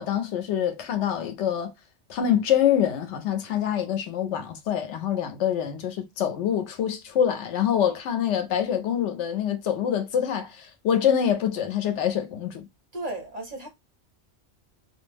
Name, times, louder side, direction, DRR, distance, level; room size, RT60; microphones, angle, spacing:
voice 1, 0.0-1.7 2.1-12.7, left 9 dB, 85° left, 0.9 m, -25 dB
voice 2, 12.9-13.7, right 2 dB, 40° right, 0.8 m, -34 dB
2.3 x 2.1 x 3.2 m
omnidirectional pair, 1.2 m